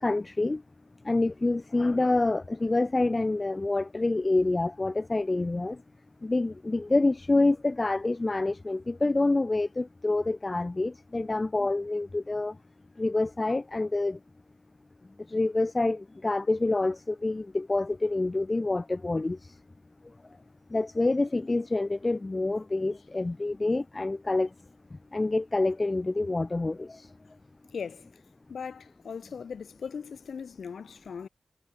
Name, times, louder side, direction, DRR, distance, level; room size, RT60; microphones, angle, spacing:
voice 1, 0.0-0.6 1.0-5.8 6.2-12.5 13.0-14.2 15.3-19.4 20.7-24.5 25.1-27.1, left 2 dB, 30° left, 0.7 m, -27 dB
voice 2, 27.7-28.1 28.5-31.3, left 6 dB, 85° left, 2.2 m, -39 dB
wide cardioid pair, 95°, 0 cm